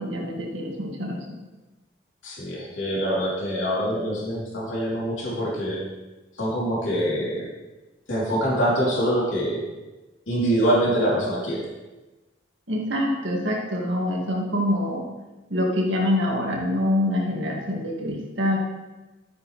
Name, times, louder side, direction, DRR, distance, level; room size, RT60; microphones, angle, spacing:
voice 1, 0.0-1.4 12.7-15.0 15.5-18.6, left 1 dB, 70° right, -2 dB, 2.1 m, -25 dB
voice 2, 2.2-5.8 6.4-7.4 8.1-9.6 10.3-11.6, equal, 75° left, -7 dB, 3.3 m, -24 dB
12.5 x 9.5 x 3.3 m, 1.1 s
head